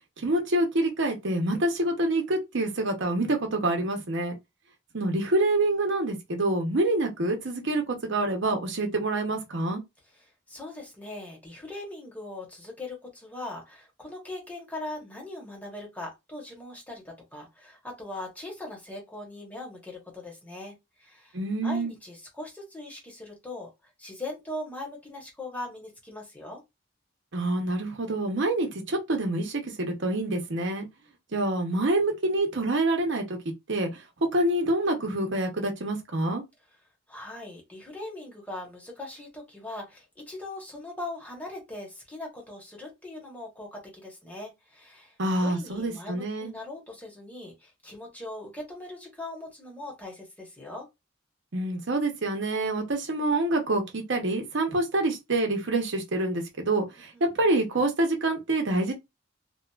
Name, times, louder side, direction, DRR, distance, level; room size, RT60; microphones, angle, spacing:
voice 1, 0.2-4.3 4.9-9.8 21.3-21.9 27.3-30.9 31.3-33.4 33.7-34.0 34.3-36.4 45.2-46.5 51.5-58.9, right 2 dB, 65° right, 0.8 m, -26 dB
voice 2, 10.2-21.3 21.6-23.7 24.0-26.6 37.1-45.1 45.4-50.9 57.1-57.3, left 2 dB, 10° left, 1.0 m, -40 dB
2.8 x 2.4 x 2.3 m
head